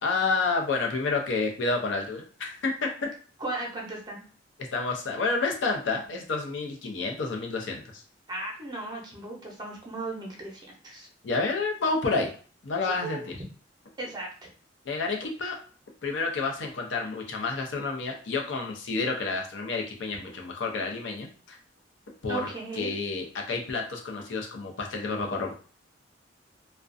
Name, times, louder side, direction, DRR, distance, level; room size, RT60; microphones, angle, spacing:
voice 1, 0.0-3.1 4.7-7.8 11.2-12.3 12.6-13.3 14.9-15.6 16.0-21.6 22.2-22.5 22.8-25.5, left 3 dB, 75° left, 1 dB, 0.5 m, -29 dB
voice 2, 3.4-4.2 8.3-11.1 12.9-13.2 14.0-14.3 22.3-23.0, right 2 dB, 25° right, -1 dB, 0.6 m, -36 dB
2.4 x 2.1 x 2.5 m, 0.42 s
head